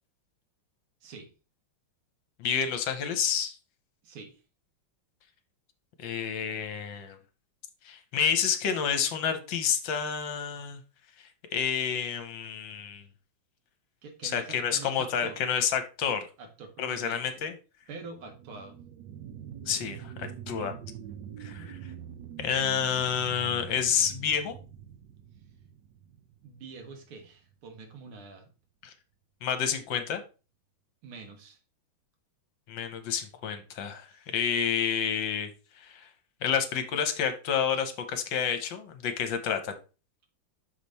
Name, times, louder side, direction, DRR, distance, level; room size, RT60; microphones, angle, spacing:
voice 1, 1.0-1.3 4.0-4.4 14.0-15.4 16.4-17.5 17.9-18.8 21.4-21.7 26.4-28.5 31.0-31.6, right 4 dB, 85° right, 5 dB, 2.3 m, -45 dB
voice 2, 2.4-3.6 6.0-7.2 7.8-10.8 11.5-13.0 14.2-16.3 16.8-17.5 19.7-20.7 21.4-21.6 22.4-24.5 28.8-28.9 29.4-30.2 32.7-35.5 35.8-36.1 36.4-39.8, left 7 dB, 70° left, 9 dB, 1.5 m, -29 dB
sound 1, 18.0-27.1 27.5-27.6, right 9 dB, 65° right, 1.2 m, -44 dB
6.0 x 5.1 x 4.1 m, 0.33 s
omnidirectional pair, 2.3 m